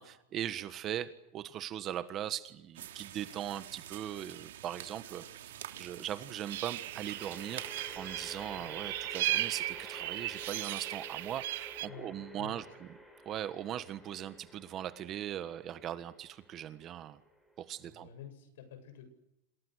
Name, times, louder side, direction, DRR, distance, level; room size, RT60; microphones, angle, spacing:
voice 1, 0.0-12.9 13.2-17.2 17.6-18.1, right 11 dB, 25° right, 12 dB, 1.4 m, -40 dB
sound 1, 2.7-8.0, right 12 dB, 80° right, 3.4 m, -47 dB
sound 2, 6.5-11.9, right 17 dB, 60° right, 0.9 m, -37 dB
sound 3, 6.6-18.0, equal, 5° left, 4.8 m, -52 dB
voice 2, 11.9-12.7 17.8-19.1, left 8 dB, 70° left, 9 dB, 7.6 m, -50 dB
29.0 x 27.5 x 6.5 m, 0.84 s
supercardioid pair, 170°, 0 cm